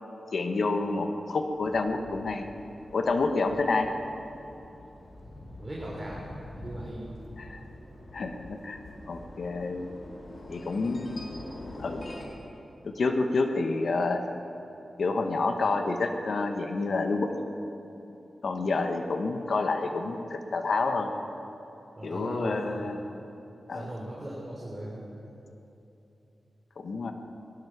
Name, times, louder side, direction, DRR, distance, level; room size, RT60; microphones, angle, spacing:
voice 1, 0.3-2.5 2.9-3.9 7.4-7.6 8.1-8.8 9.1-9.9 10.5-11.2 11.8-12.1 12.8-14.2 15.0-17.4 18.4-21.1 22.0-23.0 23.7-23.9 26.8-27.1, left 3 dB, 70° left, 5 dB, 1.0 m, -28 dB
sound 1, 1.5-12.2, left 1 dB, 50° left, 2.9 m, -45 dB
voice 2, 5.6-6.2 6.5-7.1 22.0-22.8 23.7-25.0, right 1 dB, 25° right, -5 dB, 3.2 m, -38 dB
18.5 x 11.5 x 5.9 m, 2.9 s
cardioid pair, 70°, 0 cm